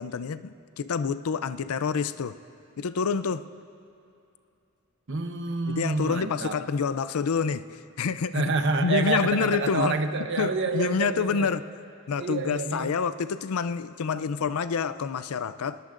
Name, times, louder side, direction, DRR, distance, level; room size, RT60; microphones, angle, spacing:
voice 1, 0.0-2.4 2.8-3.4 5.7-8.5 8.8-10.0 10.4-11.6 12.1-15.8, left 5 dB, 90° left, 14 dB, 0.5 m, -27 dB
voice 2, 5.1-6.6 8.3-11.5 12.1-12.9, right 3 dB, 60° right, 6 dB, 1.0 m, -28 dB
25.5 x 20.0 x 2.6 m, 2.7 s
head